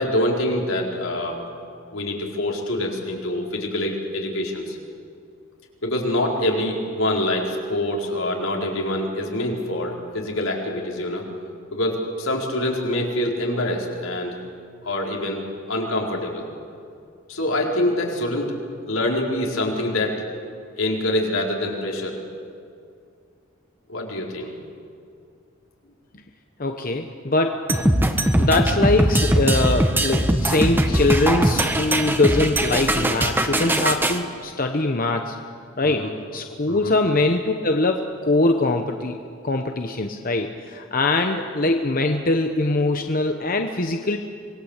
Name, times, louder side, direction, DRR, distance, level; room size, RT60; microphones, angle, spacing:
voice 1, 0.0-1.4 1.9-4.8 5.8-11.2 11.7-14.4 14.8-15.4 15.7-16.4 17.3-18.5 18.9-20.2 20.8-22.2 23.9-24.5 35.8-36.1 36.7-36.9, left 1 dB, 80° left, -1 dB, 4.6 m, -25 dB
voice 2, 26.6-27.7 28.4-35.4 35.8-39.2 39.4-44.2, left 2 dB, 45° left, 5 dB, 1.1 m, -22 dB
sound 1, 27.7-34.2, right 1 dB, 10° right, 1.3 m, -20 dB
26.0 x 21.0 x 8.2 m, 2.4 s
head